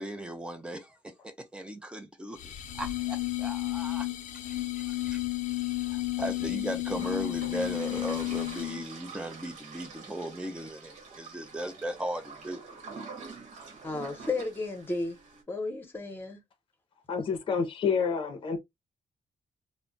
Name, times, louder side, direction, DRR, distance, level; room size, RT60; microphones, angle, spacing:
voice 1, 0.0-4.1 4.5-12.6, right 1 dB, 10° right, 0.6 m, -38 dB
sound 1, 2.4-8.9, left 17 dB, 90° left, 0.5 m, -32 dB
sound 2, 7.0-15.4, right 4 dB, 75° right, 1.0 m, -46 dB
voice 2, 13.8-15.2 15.5-16.4, left 3 dB, 15° left, 0.9 m, -33 dB
voice 3, 17.1-18.6, left 6 dB, 45° left, 0.6 m, -28 dB
2.3 x 2.1 x 3.8 m
cardioid pair, 145°, 12 cm